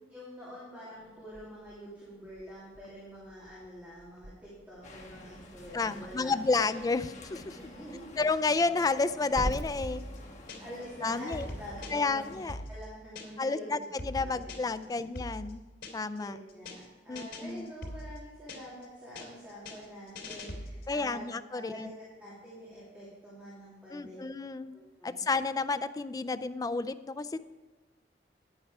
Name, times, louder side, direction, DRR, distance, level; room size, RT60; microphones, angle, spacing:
voice 1, 0.1-6.6 7.5-8.0 10.6-12.2 12.7-13.9 14.2-14.5 14.8-15.0 16.2-21.9 22.2-24.2 24.7-25.2, equal, 10° right, -9 dB, 2.6 m, -46 dB
Growling / Hiss, 1.0-11.7, right 1 dB, 40° right, 0.9 m, -45 dB
sound 1, 4.8-12.5, left 1 dB, 45° left, 1.3 m, -50 dB
voice 2, 5.7-7.6 8.2-10.0 11.0-11.5 11.9-12.6 13.4-15.6 15.9-16.4 17.1-17.7 20.9-21.9 23.9-24.7 25.0-27.4, left 3 dB, 20° left, 13 dB, 0.3 m, -31 dB
sound 2, 9.8-10.9 11.2-13.5 13.8-16.2 16.5-16.9 17.2-18.9 19.2-21.0, left 1 dB, 85° left, 3.1 m, -42 dB
10.0 x 8.7 x 4.8 m, 1.2 s
head